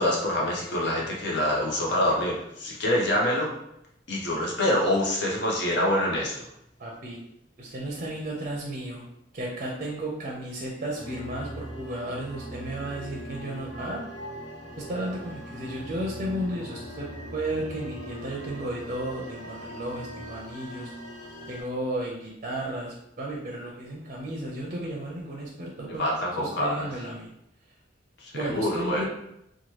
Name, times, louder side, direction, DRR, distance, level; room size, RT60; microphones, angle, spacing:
voice 1, 0.0-3.5 4.1-6.3 26.0-26.9 28.2-29.0, left 1 dB, 65° left, -2 dB, 0.8 m, -26 dB
voice 2, 6.8-7.2 7.6-9.0 9.3-14.0 14.8-20.9 21.5-26.1 26.4-27.3 28.3-29.0, right 1 dB, 40° right, -2 dB, 0.5 m, -34 dB
sound 1, 11.0-21.6, equal, 90° left, 0.9 m, -40 dB
2.9 x 2.2 x 3.0 m, 0.79 s
head